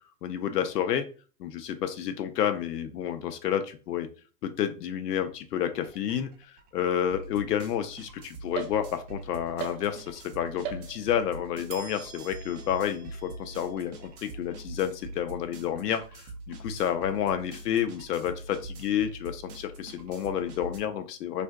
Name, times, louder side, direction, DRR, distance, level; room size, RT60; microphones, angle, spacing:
voice 1, 0.2-1.1 1.4-4.1 4.4-6.3 6.7-21.4, left 9 dB, 80° left, 9 dB, 0.7 m, -30 dB
sound 1, 5.1-5.3 5.6-20.8, right 2 dB, 30° right, 0.4 m, -43 dB
sound 2, 8.6-9.2 9.6-10.3 10.6-11.3 11.7-15.2, right 8 dB, 60° right, 0.8 m, -42 dB
2.5 x 2.2 x 3.4 m, 0.37 s
hypercardioid pair, 135°, 47 cm